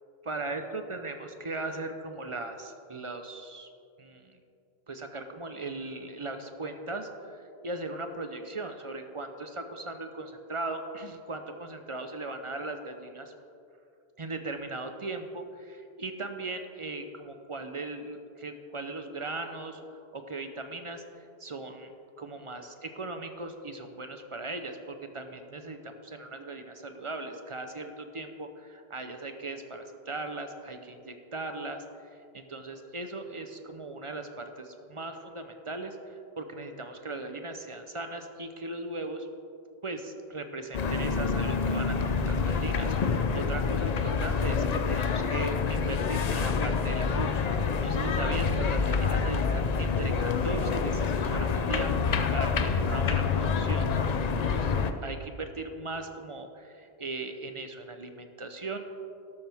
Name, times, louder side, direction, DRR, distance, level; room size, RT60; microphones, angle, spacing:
voice 1, 0.3-3.7 4.0-4.4 4.9-13.3 14.2-21.9 22.2-31.8 32.1-39.3 39.8-51.9 52.3-54.8 55.0-58.8, right 2 dB, 35° right, 6 dB, 0.7 m, -38 dB
sound 1, 40.7-54.9, left 5 dB, 50° left, 0.6 m, -27 dB
12.5 x 12.0 x 3.5 m, 2.6 s
omnidirectional pair, 1.1 m